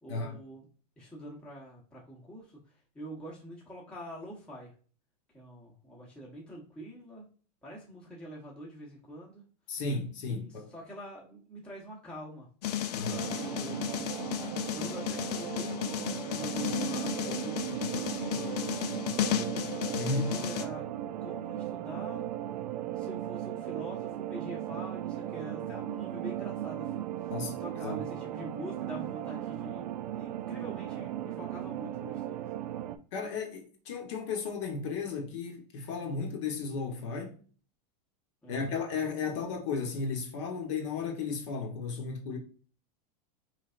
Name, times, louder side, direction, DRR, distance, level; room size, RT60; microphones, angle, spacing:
voice 1, 0.0-0.7 1.0-2.6 2.9-4.7 5.3-7.2 7.6-9.4 10.2-12.5 13.2-15.8 16.3-18.6 19.0-20.8 21.2-22.3 22.9-27.3 27.6-32.7 38.4-38.8, equal, 5° left, 0.8 m, -45 dB
voice 2, 9.7-10.7 12.9-13.3 20.0-20.4 27.3-28.0 33.1-37.4 38.5-42.4, left 4 dB, 45° left, 0.9 m, -34 dB
sound 1, 12.6-20.7, left 10 dB, 65° left, 0.6 m, -34 dB
sound 2, 13.1-33.0, right 12 dB, 75° right, 0.5 m, -37 dB
4.6 x 3.2 x 2.3 m
supercardioid pair, 180°, 21 cm